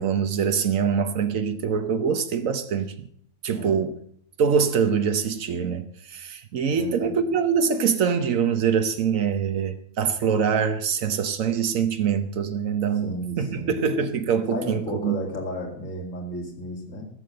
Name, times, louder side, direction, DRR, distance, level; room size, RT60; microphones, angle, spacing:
voice 1, 0.0-3.1 3.4-3.9 4.4-13.1 13.4-15.2, right 6 dB, 90° right, 1.3 m, -24 dB
voice 2, 3.5-3.8 6.7-7.2 13.0-13.9 14.5-17.1, equal, 80° left, 2.9 m, -33 dB
15.0 x 7.0 x 7.6 m
omnidirectional pair, 1.3 m